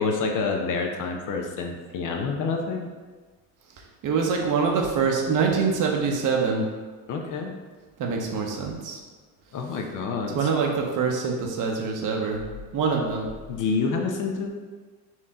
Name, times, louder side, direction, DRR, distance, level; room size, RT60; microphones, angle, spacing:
voice 1, 0.0-2.9 7.1-7.5 9.5-10.5 13.5-14.5, left 4 dB, 50° left, 2 dB, 0.7 m, -28 dB
voice 2, 4.0-6.6 8.0-9.0 10.3-10.7 11.0-12.4 12.7-13.3, right 5 dB, 50° right, 1 dB, 0.9 m, -24 dB
4.4 x 2.7 x 3.6 m, 1.4 s
supercardioid pair, 95°, 40 cm